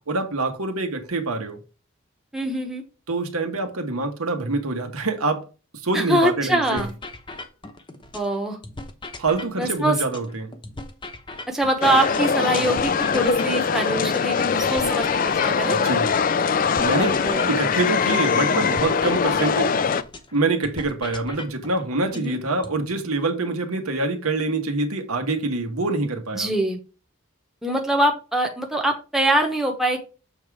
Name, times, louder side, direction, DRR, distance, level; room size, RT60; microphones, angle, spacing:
voice 1, 0.1-1.6 3.1-5.4 5.8-6.8 9.2-10.5 15.7-16.1 16.8-17.2 17.5-19.8 20.3-26.5, right 3 dB, 85° right, 1.4 m, -25 dB
voice 2, 2.3-2.8 5.9-6.9 8.1-8.6 9.6-10.0 11.5-15.8 17.2-17.5 22.1-22.4 26.3-26.8 27.6-30.0, right 1 dB, ahead, 1.0 m, -23 dB
sound 1, 6.8-8.3 8.6-12.3 12.6-16.3 16.6-20.3 20.6-22.8, left 2 dB, 20° left, 0.8 m, -39 dB
sound 2, 11.8-20.0, left 6 dB, 40° left, 0.3 m, -22 dB
7.2 x 3.7 x 4.8 m
head